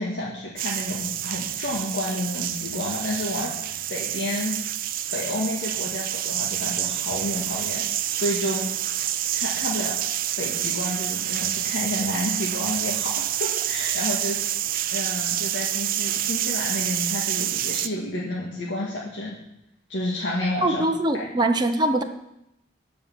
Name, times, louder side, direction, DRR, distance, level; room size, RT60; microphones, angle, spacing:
voice 1, 0.0-4.5 5.1-7.8 8.1-8.7 9.3-9.9 10.4-14.4 14.9-19.4 19.9-20.9 21.1-21.3, left 1 dB, 80° left, -4 dB, 1.9 m, -30 dB
sound 1, 0.6-17.9, right 12 dB, 50° right, 0.5 m, -28 dB
voice 2, 20.6-22.0, right 1 dB, 25° right, 4 dB, 0.8 m, -22 dB
12.5 x 5.6 x 7.5 m, 0.83 s
head